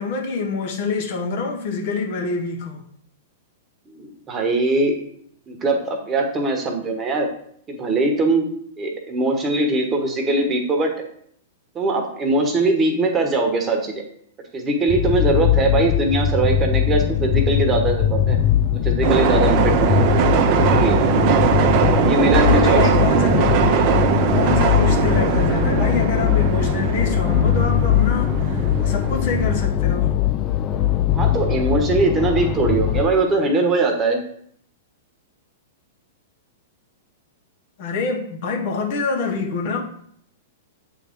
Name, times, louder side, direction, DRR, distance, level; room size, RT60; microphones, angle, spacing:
voice 1, 0.0-2.9 22.5-23.7 24.3-30.1 37.8-39.8, left 4 dB, 55° left, 2 dB, 1.1 m, -26 dB
voice 2, 3.9-4.9 5.5-7.3 7.7-8.5 8.8-10.9 11.7-14.0 14.5-18.4 18.7-20.0 20.7-21.0 22.0-22.9 31.1-34.2, right 2 dB, 25° right, 2 dB, 1.2 m, -21 dB
sound 1, 14.9-33.1, left 10 dB, 35° left, 0.4 m, -20 dB
sound 2, 19.0-29.7, right 8 dB, 45° right, 0.6 m, -20 dB
7.7 x 3.8 x 3.6 m, 0.66 s
hypercardioid pair, 110°, 0 cm